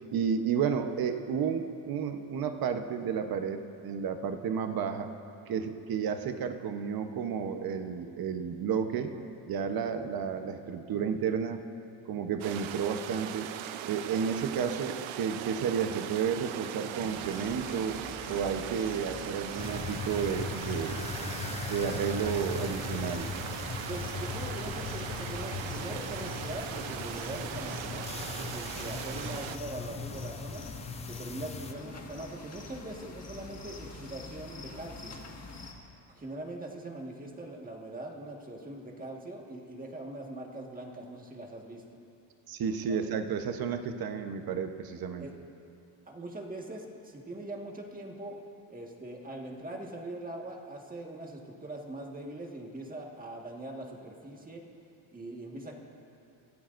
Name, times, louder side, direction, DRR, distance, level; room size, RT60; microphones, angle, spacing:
voice 1, 0.1-5.1 5.5-9.2 9.5-11.6 12.1-13.5 13.9-18.0 18.3-21.0 21.7-23.3 42.5-45.3, right 7 dB, 50° right, 7 dB, 1.0 m, -32 dB
sound 1, 12.4-29.6, right 10 dB, 80° right, 0.8 m, -39 dB
sound 2, 17.0-35.7, left 3 dB, 35° left, 1.8 m, -46 dB
sound 3, 19.6-31.7, left 5 dB, 15° left, 0.4 m, -39 dB
voice 2, 23.9-28.2 28.5-30.7 31.1-35.2 36.1-41.8 42.9-43.1 45.2-45.4 46.1-48.4 48.7-54.6 55.1-55.8, right 1 dB, 20° right, 0 dB, 1.7 m, -42 dB
25.0 x 16.0 x 2.6 m, 2.6 s
cardioid pair, 135°, 46 cm